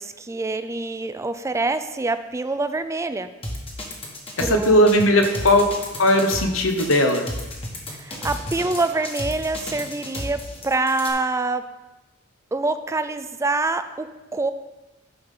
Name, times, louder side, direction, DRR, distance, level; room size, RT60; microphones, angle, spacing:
voice 1, 0.0-3.3 4.4-4.9 7.9-11.7 12.5-14.5, right 3 dB, 15° right, 10 dB, 0.4 m, -26 dB
sound 1, 3.4-11.1, left 1 dB, 30° left, 1.4 m, -32 dB
voice 2, 4.4-5.6 6.0-7.3, left 1 dB, 75° left, 5 dB, 1.0 m, -18 dB
9.7 x 5.6 x 3.8 m, 1.1 s
head